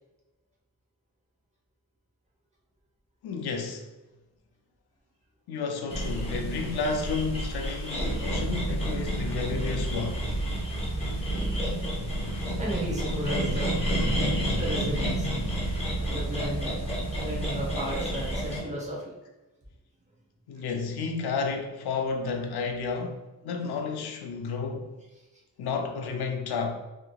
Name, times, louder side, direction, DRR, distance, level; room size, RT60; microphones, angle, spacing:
voice 1, 3.2-3.9 5.5-10.3 20.5-24.9 25.6-26.7, left 4 dB, 80° left, 0.5 m, -31 dB
sound 1, 5.9-18.6, right 1 dB, 15° left, 0.7 m, -29 dB
voice 2, 12.6-13.7 14.5-15.3 15.9-16.7 17.2-19.0, equal, 20° right, 0.8 m, -34 dB
3.2 x 2.7 x 2.2 m
wide cardioid pair, 160°, 38 cm